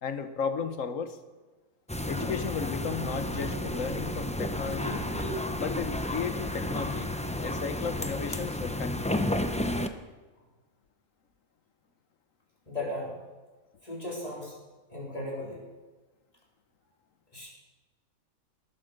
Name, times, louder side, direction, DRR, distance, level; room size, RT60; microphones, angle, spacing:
voice 1, 0.0-1.2 2.1-5.1 5.6-7.1 7.4-9.3, left 6 dB, 65° left, 9 dB, 1.5 m, -34 dB
sound 1, 1.9-9.9, left 1 dB, 10° left, 0.4 m, -32 dB
Train, 3.0-8.3, right 2 dB, 45° right, 1.6 m, -43 dB
voice 2, 12.7-13.2 13.8-14.5 14.9-15.6 17.3-17.5, left 1 dB, 25° left, -3 dB, 4.2 m, -36 dB
19.5 x 8.5 x 6.7 m, 1.3 s
omnidirectional pair, 1.5 m